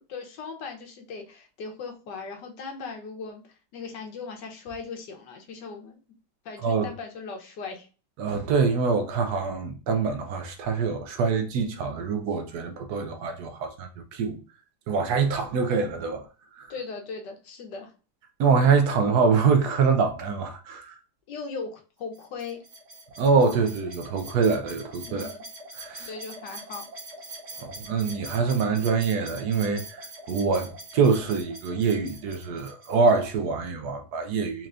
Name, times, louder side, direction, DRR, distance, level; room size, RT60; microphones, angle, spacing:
voice 1, 0.1-3.4 3.7-6.0 6.4-7.9 16.7-17.9 21.3-22.6 25.0-25.4 26.0-26.9, left 4 dB, 80° left, 1.5 m, -38 dB
voice 2, 6.6-6.9 8.2-14.4 14.9-16.3 16.6-16.7 18.4-21.0 23.2-25.4 25.7-26.1 27.6-30.0 30.3-34.7, right 5 dB, 70° right, 1.1 m, -25 dB
sound 1, 22.1-33.2, right 2 dB, 50° right, 1.2 m, -43 dB
4.4 x 3.0 x 2.4 m
omnidirectional pair, 1.9 m